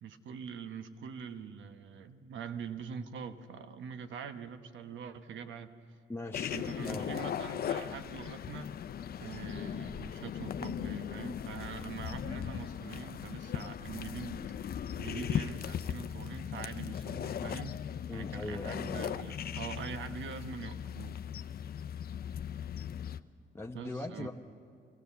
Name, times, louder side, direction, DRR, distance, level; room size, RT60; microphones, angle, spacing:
voice 1, 0.0-5.7 6.5-8.7 9.2-17.8 18.1-21.2 23.7-24.3, right 7 dB, 70° right, 9 dB, 1.1 m, -44 dB
voice 2, 6.1-7.1 18.1-19.3 23.5-24.3, left 2 dB, 10° left, -1 dB, 0.9 m, -41 dB
sound 1, 6.3-23.2, left 9 dB, 50° left, 0.6 m, -38 dB
24.0 x 16.5 x 7.0 m, 2.4 s
cardioid pair, 90°, 20 cm